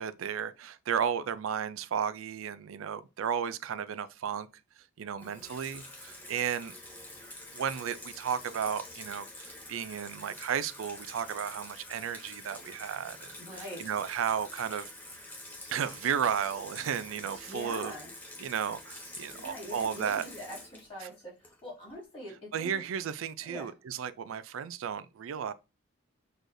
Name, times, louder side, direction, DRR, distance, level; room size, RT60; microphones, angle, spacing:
voice 1, 0.0-4.5 5.0-6.7 7.5-13.3 13.6-14.9 15.7-17.9 18.4-20.2 22.5-25.5, right 8 dB, 80° right, 0.4 m, -33 dB
voice 2, 5.2-5.5 13.4-14.0 17.4-18.1 19.3-23.1 23.4-23.8, left 1 dB, 30° left, 2.4 m, -44 dB
Water tap faucet / Sink (filling or washing), 5.2-21.9, left 1 dB, 10° left, 0.9 m, -47 dB
6.2 x 2.4 x 2.6 m
head